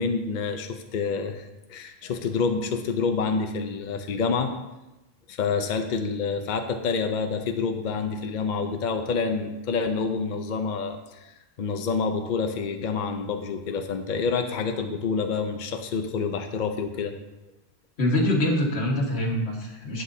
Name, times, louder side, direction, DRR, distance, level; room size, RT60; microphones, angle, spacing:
voice 1, 0.0-4.5 5.3-17.1, left 5 dB, 50° left, 6 dB, 0.7 m, -28 dB
voice 2, 18.0-20.0, left 1 dB, 85° left, 0 dB, 1.8 m, -24 dB
11.5 x 8.0 x 2.7 m, 1.0 s
omnidirectional pair, 1.1 m